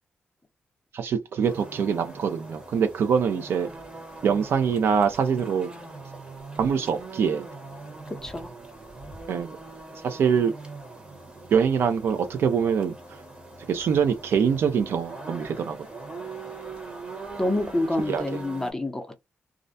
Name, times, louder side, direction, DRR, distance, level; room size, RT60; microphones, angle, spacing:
voice 1, 0.9-3.7 4.2-5.7 6.6-7.4 9.3-9.6 10.0-10.5 11.5-12.9 13.7-15.9 18.1-18.4, right 7 dB, 70° right, 0.5 m, -24 dB
sound 1, 1.4-18.7, right 3 dB, 25° right, 1.0 m, -42 dB
voice 2, 8.1-8.5 17.4-19.2, left 1 dB, 10° left, 0.6 m, -28 dB
2.5 x 2.1 x 2.6 m
cardioid pair, 90°, 4 cm